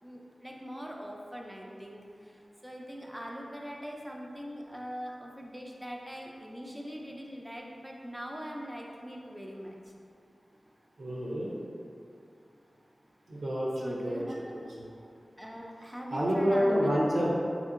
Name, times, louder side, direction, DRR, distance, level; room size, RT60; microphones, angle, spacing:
voice 1, 0.0-9.9 13.8-14.7 15.4-17.3, equal, 5° right, -1 dB, 0.4 m, -42 dB
voice 2, 11.0-11.5 13.3-14.2 14.5-14.9 16.1-17.3, equal, 80° right, -6 dB, 0.4 m, -28 dB
2.7 x 2.6 x 2.5 m, 2.4 s
cardioid pair, 40°, 0 cm